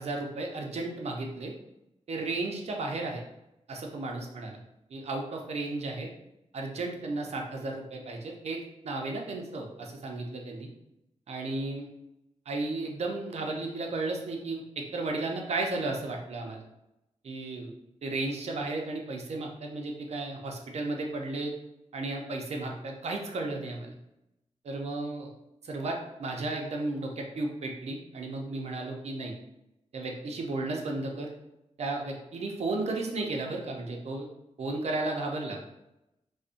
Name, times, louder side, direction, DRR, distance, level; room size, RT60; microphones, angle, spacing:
voice 1, 0.0-1.5 2.1-3.2 3.7-4.6 4.9-6.1 6.5-10.7 11.3-11.9 12.5-16.6 17.2-17.7 18.0-21.5 21.9-23.9 24.6-25.3 25.6-29.3 29.9-31.3 31.8-34.3 34.6-35.6, right 2 dB, 60° right, 1 dB, 0.4 m, -34 dB
2.5 x 2.1 x 2.4 m, 0.88 s
wide cardioid pair, 95°, 12 cm